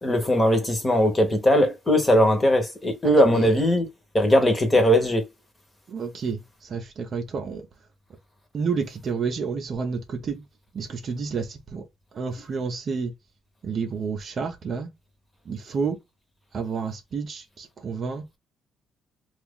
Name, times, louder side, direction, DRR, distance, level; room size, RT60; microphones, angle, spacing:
voice 1, 0.0-3.9 4.1-5.2, equal, 15° left, 1.0 m, -19 dB
voice 2, 3.0-3.5 5.9-7.6 8.5-10.4 10.7-11.8 12.1-13.1 13.6-14.9 15.5-16.0 16.5-18.2, right 5 dB, 40° right, 0.6 m, -30 dB
2.9 x 2.4 x 3.5 m
cardioid pair, 145°, 0 cm